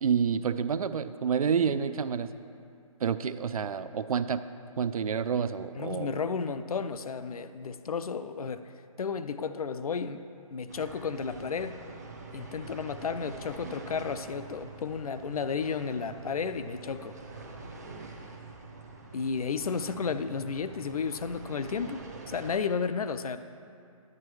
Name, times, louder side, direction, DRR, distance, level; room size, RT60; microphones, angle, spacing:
voice 1, 0.0-2.3 3.0-4.4 4.8-6.1, right 7 dB, 80° right, 13 dB, 0.4 m, -28 dB
voice 2, 5.8-8.6 9.0-10.2 10.5-11.8 12.3-17.1 19.1-23.4, left 5 dB, 90° left, 11 dB, 0.5 m, -33 dB
sound 1, 10.7-22.6, right 3 dB, 30° right, 0.6 m, -45 dB
10.5 x 8.5 x 3.2 m, 2.4 s
hypercardioid pair, 175°, 18 cm